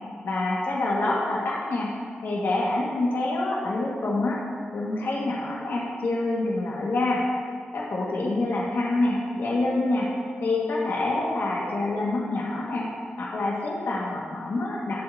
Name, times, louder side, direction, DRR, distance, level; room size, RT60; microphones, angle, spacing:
voice 1, 0.2-1.9 2.2-4.4 4.7-7.2 7.7-10.1 10.4-12.9 13.2-15.0, left 2 dB, 75° left, -4 dB, 1.8 m, -26 dB
19.5 x 7.8 x 2.8 m, 2.1 s
wide cardioid pair, 150°, 4 cm